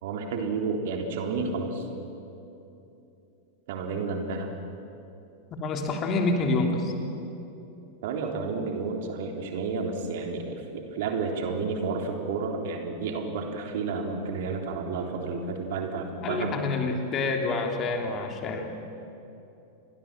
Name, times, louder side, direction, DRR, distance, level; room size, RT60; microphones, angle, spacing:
voice 1, 0.0-1.9 3.7-4.5 8.0-16.6, right 4 dB, 55° right, 3 dB, 3.6 m, -31 dB
voice 2, 5.5-6.9 16.2-18.8, left 3 dB, 30° left, 3 dB, 3.5 m, -27 dB
30.0 x 23.0 x 7.6 m, 2.9 s
figure-of-eight pair, 90°, 0 cm